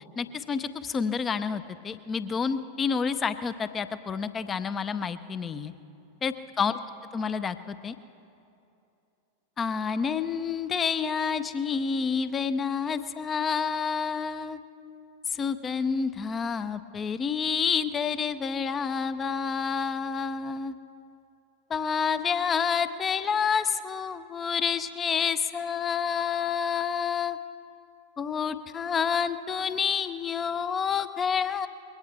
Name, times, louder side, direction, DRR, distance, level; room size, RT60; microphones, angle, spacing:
voice 1, 0.2-5.7 6.2-6.8 7.1-8.0 9.6-14.6 15.3-20.8 21.7-27.4 28.2-31.7, left 6 dB, 20° left, 13 dB, 0.6 m, -29 dB
22.0 x 17.5 x 3.4 m, 2.7 s
figure-of-eight pair, 90°, 0 cm